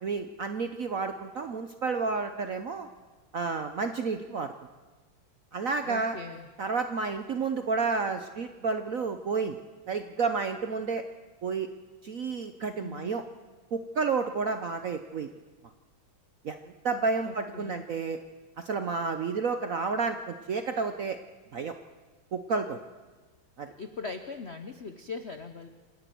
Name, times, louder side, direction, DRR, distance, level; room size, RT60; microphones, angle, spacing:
voice 1, 0.0-2.9 3.3-4.5 5.5-6.2 6.6-9.6 9.9-11.0 11.4-11.7 12.0-13.2 13.7-15.3 16.4-16.6 16.8-18.2 18.6-21.2 21.5-21.7 22.3-22.8 23.6-23.7, right 4 dB, 60° right, 8 dB, 0.8 m, -30 dB
voice 2, 5.8-6.5 12.8-13.2 17.2-17.9 23.8-25.7, left 4 dB, 60° left, 8 dB, 0.6 m, -40 dB
27.0 x 10.5 x 9.2 m, 1.3 s
omnidirectional pair, 2.4 m